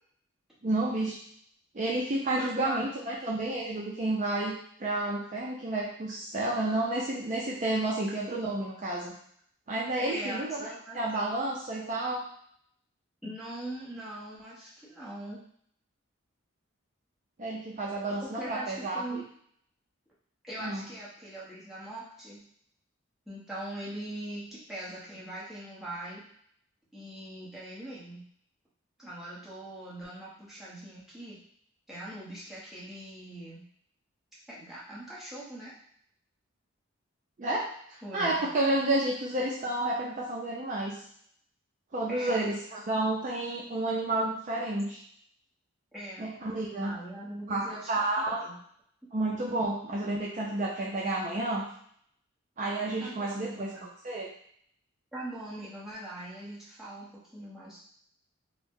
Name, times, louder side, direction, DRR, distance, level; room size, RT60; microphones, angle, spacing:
voice 1, 0.6-1.2 1.7-9.1 9.7-12.2 17.4-19.2 20.6-20.8 37.4-37.6 37.9-41.0 41.9-45.0 46.2-47.0 47.5-48.4 49.1-51.7 52.6-53.7 54.0-54.3, right 2 dB, 40° right, -4 dB, 0.4 m, -30 dB
voice 2, 2.4-3.1 10.0-11.0 13.2-15.4 18.2-19.2 20.4-22.4 23.3-26.2 26.9-28.3 29.0-31.4 31.9-33.7 34.5-35.7 38.0-38.5 42.1-42.4 45.9-46.3 46.8-48.1 48.4-48.6 53.0-53.9 55.1-57.8, right 1 dB, ahead, -8 dB, 0.8 m, -41 dB
2.7 x 2.0 x 3.5 m, 0.65 s
head